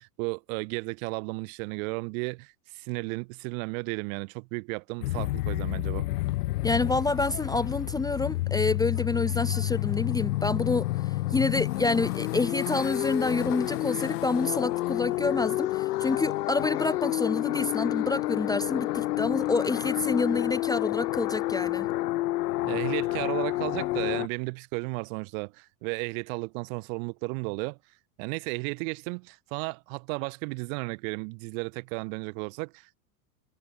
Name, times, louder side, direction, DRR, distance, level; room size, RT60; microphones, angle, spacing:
voice 1, 0.0-6.1 22.7-27.8 28.2-33.0, right 33 dB, 60° right, 3.5 m, -34 dB
sound 1, 5.0-24.3, left 17 dB, 80° left, 1.5 m, -29 dB
voice 2, 6.6-21.9, left 3 dB, 10° left, 0.9 m, -28 dB
supercardioid pair, 130°, 47 cm